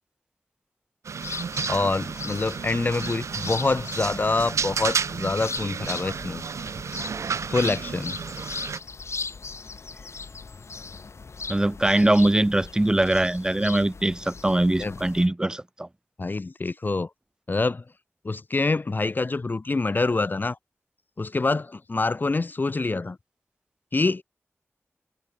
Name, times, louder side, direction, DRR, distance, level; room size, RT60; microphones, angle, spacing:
sound 1, 1.0-8.8, right 6 dB, 80° right, 0.4 m, -32 dB
sound 2, 1.2-15.3, left 4 dB, 65° left, 3.2 m, -39 dB
voice 1, 1.7-6.4 7.5-8.2 14.8-15.0 16.2-17.1 17.5-17.8 18.2-20.6 21.2-23.2 23.9-24.2, left 3 dB, 40° left, 0.6 m, -26 dB
voice 2, 11.5-15.9, right 1 dB, 15° right, 0.5 m, -22 dB
wide cardioid pair, 85°, 5 cm